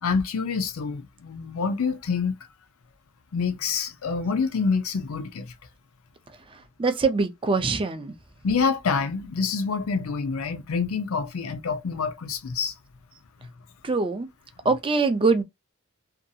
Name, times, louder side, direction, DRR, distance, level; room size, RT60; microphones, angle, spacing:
voice 1, 0.0-2.3 3.3-5.5 8.4-12.7, left 5 dB, 70° left, 0.5 m, -27 dB
voice 2, 6.8-8.1 13.8-14.3 14.6-15.4, right 4 dB, 25° right, 0.4 m, -23 dB
2.6 x 2.3 x 2.7 m
head